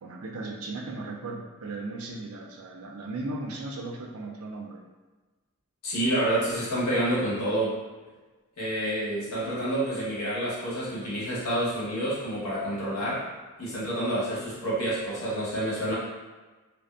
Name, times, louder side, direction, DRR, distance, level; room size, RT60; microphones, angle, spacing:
voice 1, 0.0-4.8, right 2 dB, 85° right, 1 dB, 0.4 m, -36 dB
voice 2, 5.8-7.8 8.6-13.2 13.6-15.9, right 1 dB, 90° left, -9 dB, 1.1 m, -28 dB
2.5 x 2.1 x 2.4 m, 1.3 s
head